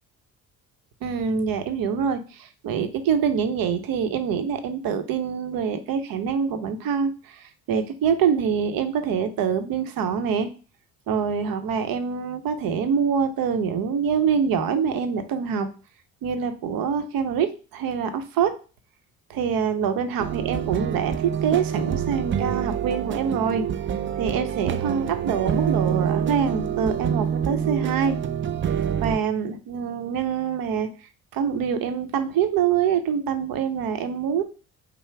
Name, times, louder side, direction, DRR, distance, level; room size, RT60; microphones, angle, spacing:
voice 1, 1.0-10.5 11.1-15.7 16.2-18.5 19.3-23.6 24.2-28.2 29.0-30.9 31.3-34.4, right 7 dB, 70° right, 8 dB, 0.8 m, -25 dB
sound 1, 20.2-29.2, right 8 dB, 35° right, 0.4 m, -26 dB
5.6 x 2.0 x 4.6 m, 0.35 s
supercardioid pair, 75°, 36 cm